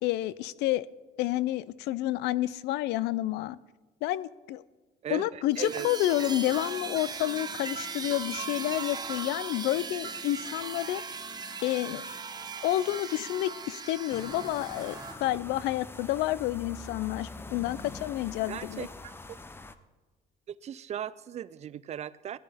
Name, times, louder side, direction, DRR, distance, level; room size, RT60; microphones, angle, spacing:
voice 1, 0.0-0.9 1.2-3.6 4.0-4.6 5.1-11.0 11.6-12.1 12.6-18.9, left 15 dB, 80° left, 20 dB, 0.4 m, -29 dB
voice 2, 5.0-5.9 18.5-19.1 20.5-22.4, right 10 dB, 40° right, 17 dB, 0.4 m, -38 dB
sound 1, 5.5-15.2, right 4 dB, 25° right, 0.9 m, -38 dB
sound 2, 14.1-19.7, left 3 dB, 15° left, 0.6 m, -44 dB
17.5 x 12.0 x 3.4 m, 1.2 s
cardioid pair, 110°, 17 cm